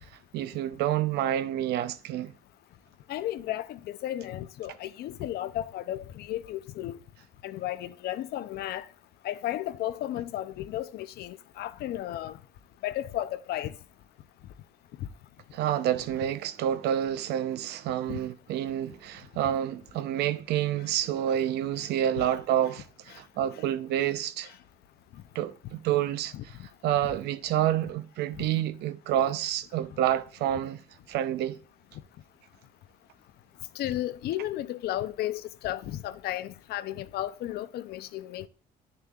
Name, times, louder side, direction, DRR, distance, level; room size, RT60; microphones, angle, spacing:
voice 1, 0.3-2.3 15.5-24.5 25.3-26.5 26.8-30.8 31.1-31.6, right 11 dB, 80° right, 0.6 m, -28 dB
voice 2, 3.1-7.0 7.4-8.9 9.2-12.4 12.8-13.7 18.1-18.2 22.2-22.3 26.3-26.4 28.4-28.5 33.8-38.5, left 13 dB, 70° left, 0.6 m, -34 dB
9.0 x 6.8 x 2.3 m
cardioid pair, 110°, 17 cm